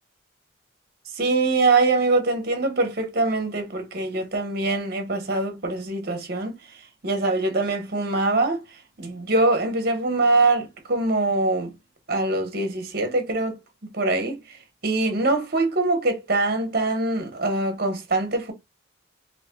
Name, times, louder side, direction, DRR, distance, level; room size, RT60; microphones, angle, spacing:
voice 1, 1.2-6.6 7.0-8.6 9.0-11.7 12.1-13.6 13.9-14.6 14.8-18.5, right 2 dB, 50° right, 1.0 m, -23 dB
4.2 x 2.8 x 2.2 m
head